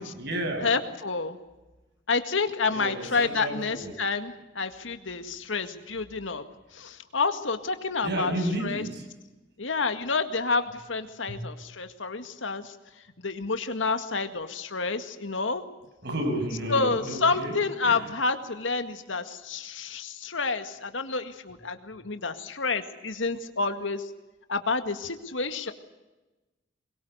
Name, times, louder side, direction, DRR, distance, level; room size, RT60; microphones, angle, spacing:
voice 1, 0.0-0.7 2.7-3.9 8.0-9.0 11.3-11.4 16.0-17.6 17.8-18.0, right 1 dB, 60° right, 4 dB, 6.6 m, -31 dB
voice 2, 0.6-1.4 2.1-6.4 6.7-8.3 8.6-8.8 9.6-12.8 13.2-15.6 16.7-24.1 24.5-25.7, left 4 dB, 85° left, 8 dB, 2.0 m, -29 dB
22.5 x 22.0 x 8.1 m, 1.1 s
head